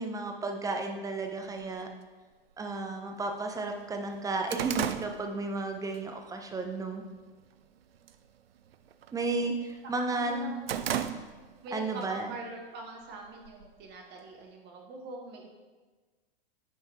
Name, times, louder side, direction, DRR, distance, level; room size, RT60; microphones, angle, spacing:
voice 1, 0.0-1.9 2.6-7.0 9.1-10.5 11.7-12.3, right 3 dB, 10° right, 4 dB, 0.7 m, -33 dB
sound 1, 1.6-1.7 2.6-2.7 3.2-3.3 3.6-6.0 6.4-6.7 7.2-7.7 7.9-8.3 8.6-9.8 10.2-11.7 12.0-12.1 13.0-13.9, right 9 dB, 80° right, 0.5 m, -35 dB
voice 2, 9.1-9.5 9.9-10.6 11.6-15.5, right 3 dB, 35° right, 1 dB, 1.5 m, -43 dB
9.2 x 4.4 x 2.9 m, 1.3 s
hypercardioid pair, 100°, 29 cm